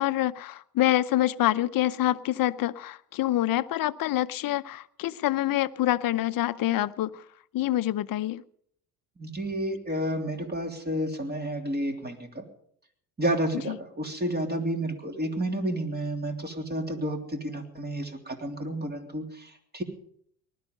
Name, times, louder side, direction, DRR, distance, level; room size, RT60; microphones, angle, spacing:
voice 1, 0.0-7.2 7.5-8.4 13.7-13.8, left 14 dB, 45° left, 13 dB, 0.8 m, -26 dB
voice 2, 9.2-12.4 13.2-19.8, right 1 dB, 20° right, 4 dB, 3.2 m, -31 dB
19.5 x 12.5 x 5.4 m, 0.65 s
hypercardioid pair, 70°, 47 cm